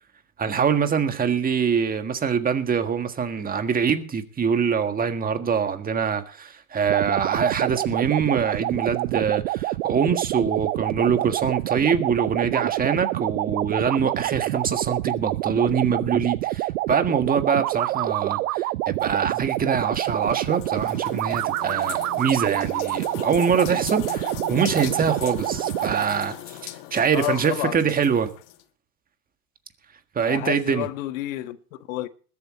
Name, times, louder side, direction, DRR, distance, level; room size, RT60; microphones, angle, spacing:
voice 1, 0.4-28.3 30.1-30.9, right 6 dB, 20° right, 1.7 m, -24 dB
sound 1, 6.9-26.0, right 18 dB, 70° right, 0.5 m, -27 dB
sound 2, 19.0-28.6, left 15 dB, 45° left, 1.2 m, -38 dB
voice 2, 27.1-27.9 30.2-32.1, left 16 dB, 60° left, 1.4 m, -30 dB
20.5 x 8.1 x 4.3 m
hypercardioid pair, 110°, 45 cm